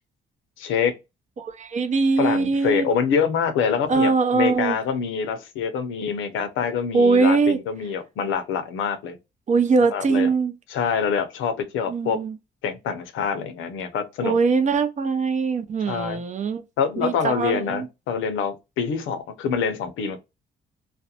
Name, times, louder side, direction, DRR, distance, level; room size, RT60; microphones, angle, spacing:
voice 1, 0.6-0.9 2.2-9.2 9.9-10.3 10.7-12.2 12.6-14.4 15.9-16.2 16.8-20.2, left 6 dB, 85° left, 0.6 m, -25 dB
voice 2, 1.4-2.9 3.9-4.8 6.9-7.6 9.5-10.5 11.9-12.4 14.2-16.6 17.0-17.9, right 4 dB, 35° right, 0.6 m, -21 dB
2.5 x 2.1 x 2.6 m
cardioid pair, 90°, 20 cm